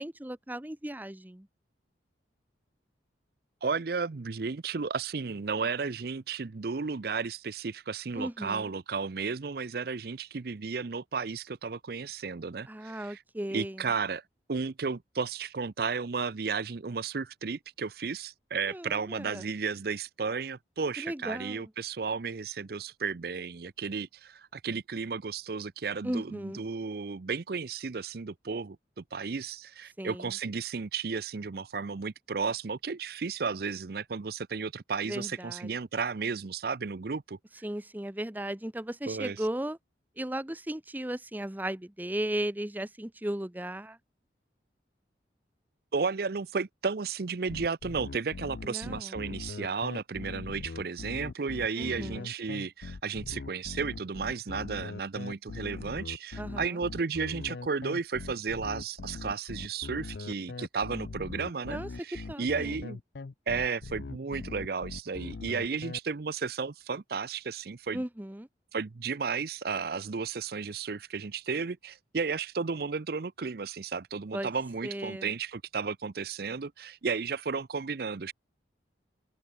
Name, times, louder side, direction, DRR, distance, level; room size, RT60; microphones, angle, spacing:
voice 1, 0.0-1.5 8.1-8.7 12.7-13.9 18.7-19.5 21.0-21.7 26.0-26.6 30.0-30.3 35.0-35.7 37.6-39.8 40.2-44.0 48.6-49.2 51.8-52.3 56.4-56.8 61.7-61.9 62.3-62.7 67.9-68.5 74.3-74.5 74.8-75.3, right 1 dB, 10° right, 0.7 m, -36 dB
voice 2, 3.6-13.2 13.5-14.2 14.5-37.4 39.1-39.4 45.9-63.0 63.5-68.0 68.7-78.3, right 5 dB, 55° right, 0.5 m, -33 dB
sound 1, 47.5-66.0, left 3 dB, 65° left, 0.5 m, -41 dB
open air
head